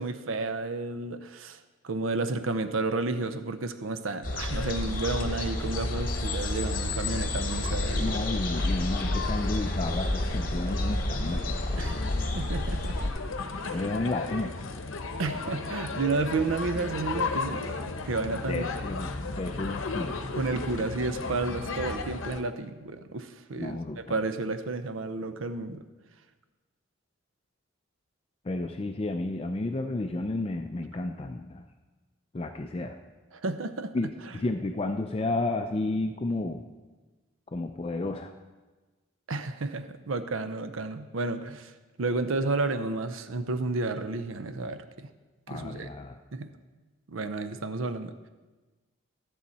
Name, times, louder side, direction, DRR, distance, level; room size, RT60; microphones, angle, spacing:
voice 1, 0.0-1.6 1.8-8.2 11.8-12.0 12.3-13.1 13.6-13.8 15.2-18.7 20.3-25.8 33.3-33.9 39.3-41.7 42.0-45.1 45.5-45.9 46.3-46.5 47.1-48.1, right 3 dB, 85° right, 10 dB, 0.6 m, -31 dB
sound 1, 4.2-13.1, left 2 dB, 45° left, 1.0 m, -30 dB
sound 2, 4.5-22.4, left 3 dB, 90° left, 0.8 m, -36 dB
voice 2, 8.0-12.2 13.7-14.6 18.5-20.2 23.6-24.2 28.4-31.6 32.3-33.0 33.9-36.6 37.5-38.3 45.5-46.2, left 2 dB, 30° left, 5 dB, 0.4 m, -32 dB
13.5 x 7.1 x 4.2 m, 1.2 s
head